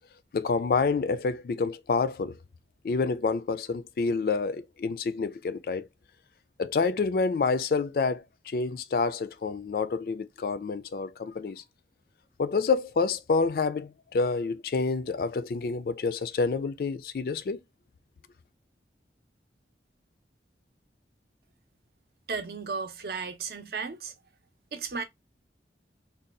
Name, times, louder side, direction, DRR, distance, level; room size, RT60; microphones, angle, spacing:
voice 1, 0.3-2.3 2.8-5.9 6.6-11.6 12.4-17.6, left 4 dB, 55° left, 0.3 m, -28 dB
voice 2, 22.3-24.1 24.7-25.0, right 5 dB, 60° right, 0.7 m, -34 dB
2.6 x 2.3 x 3.7 m
head